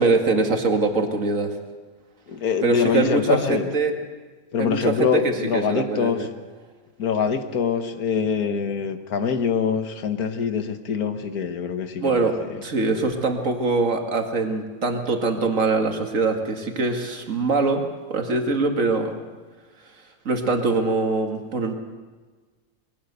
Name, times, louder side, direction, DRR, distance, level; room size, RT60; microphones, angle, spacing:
voice 1, 0.0-1.5 2.6-3.9 4.6-5.1 5.5-6.3 12.0-12.3 12.6-17.8 18.1-19.1 20.3-21.7, right 3 dB, 60° right, 4 dB, 2.3 m, -23 dB
voice 2, 2.3-3.7 4.5-6.3 7.0-12.6, left 6 dB, 90° left, 8 dB, 1.8 m, -24 dB
22.0 x 17.0 x 8.1 m, 1.4 s
omnidirectional pair, 1.5 m